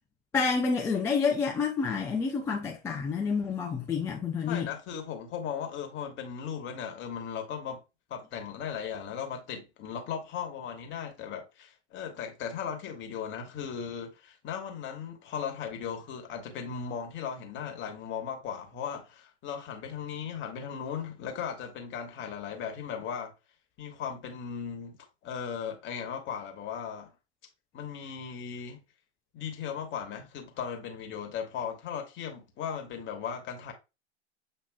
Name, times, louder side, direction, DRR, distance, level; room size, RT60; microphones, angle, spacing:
voice 1, 0.3-4.7, left 5 dB, 10° left, 0.3 m, -28 dB
voice 2, 4.4-7.8 8.1-23.3 23.8-25.0 25.2-27.1 27.7-28.8 29.3-33.7, left 7 dB, 30° left, 1.3 m, -37 dB
7.3 x 2.9 x 2.2 m
figure-of-eight pair, 95°, 36 cm